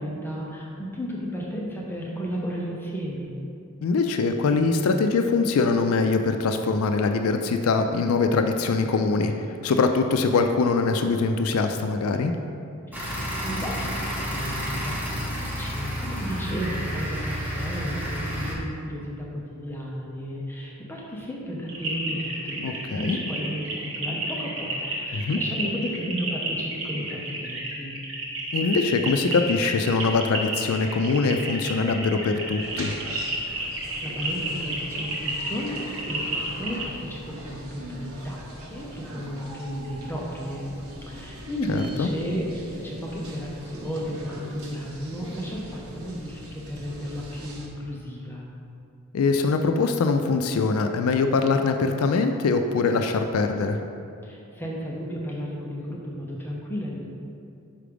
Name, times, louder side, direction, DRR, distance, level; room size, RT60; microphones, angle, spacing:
voice 1, 0.0-3.4 12.9-28.0 33.6-38.4 38.7-40.7 41.1-48.4 54.2-57.1, equal, 10° left, -3 dB, 0.7 m, -33 dB
voice 2, 3.8-12.4 22.6-23.2 25.1-25.4 28.5-33.0 41.7-42.1 49.1-53.8, left 4 dB, 75° left, 6 dB, 0.4 m, -23 dB
sound 1, 12.9-18.5, equal, 10° right, 1.0 m, -30 dB
sound 2, 21.7-36.9, right 2 dB, 65° right, 1.3 m, -31 dB
sound 3, 32.6-47.7, right 1 dB, 80° right, 1.0 m, -42 dB
5.8 x 5.0 x 5.0 m, 2.6 s
head